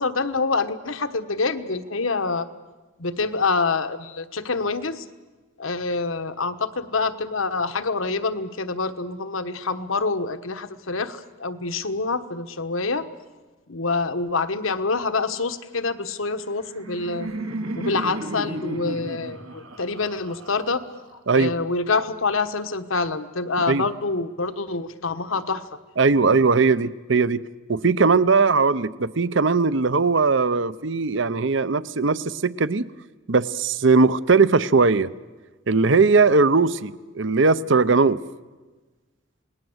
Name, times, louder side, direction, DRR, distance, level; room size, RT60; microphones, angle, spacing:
voice 1, 0.0-2.5 3.0-5.0 5.6-13.1 13.7-17.3 17.7-20.8 21.3-25.6, left 3 dB, 80° left, 10 dB, 1.3 m, -26 dB
Laughter, 16.3-21.3, right 1 dB, 85° right, 2.3 m, -34 dB
voice 2, 21.3-21.6 23.7-23.9 26.0-27.4 27.7-32.9 33.3-35.1 35.7-38.2, right 4 dB, 65° right, 16 dB, 0.7 m, -19 dB
28.0 x 19.5 x 8.0 m, 1.3 s
head